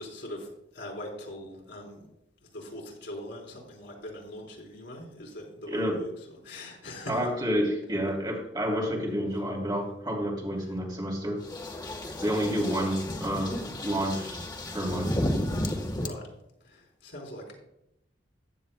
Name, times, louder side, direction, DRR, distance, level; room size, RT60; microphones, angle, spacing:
voice 1, 0.0-2.1 2.4-7.3 12.2-12.5 16.0-16.3 16.6-17.6, left 1 dB, 65° left, -1 dB, 4.2 m, -42 dB
voice 2, 5.7-6.0 7.1-11.4 12.2-15.1, equal, 25° right, -1 dB, 3.1 m, -29 dB
sound 1, 11.4-16.1, left 1 dB, 25° left, 1.4 m, -33 dB
15.5 x 9.5 x 2.3 m, 0.83 s
head